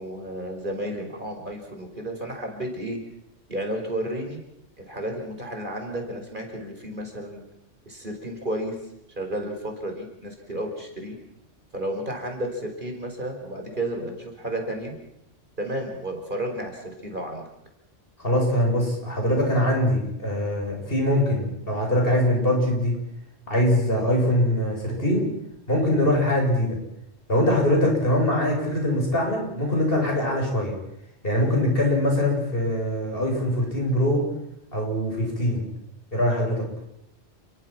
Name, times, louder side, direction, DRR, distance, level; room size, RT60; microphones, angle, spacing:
voice 1, 0.0-3.0 3.5-4.4 4.8-7.4 7.9-8.7 9.2-11.2 11.7-15.0 15.6-17.4, right 1 dB, 45° right, 3 dB, 5.2 m, -32 dB
voice 2, 18.2-22.9 23.5-25.3 25.7-26.8 27.3-30.8 31.2-34.3 34.7-35.6 36.1-36.7, left 1 dB, 50° left, 0 dB, 8.4 m, -22 dB
30.0 x 22.5 x 6.1 m, 0.79 s
omnidirectional pair, 1.2 m